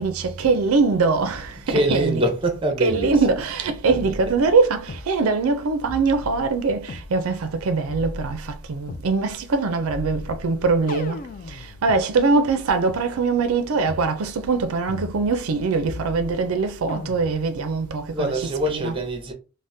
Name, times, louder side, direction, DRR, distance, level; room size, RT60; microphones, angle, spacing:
voice 1, 0.0-2.2 2.8-18.9, right 4 dB, 70° right, 0.4 m, -22 dB
voice 2, 1.5-3.3 3.9-4.3 18.1-19.3, right 1 dB, 25° right, 0.6 m, -25 dB
sound 1, 1.9-2.1 2.9-3.6 3.9-5.1 5.9-7.1 7.9-9.1 9.9-12.0 12.9-13.0 13.9-14.1 14.9-15.6 15.9-16.5 16.9-17.5, left 2 dB, 40° left, 0.3 m, -37 dB
3.5 x 2.1 x 2.6 m
head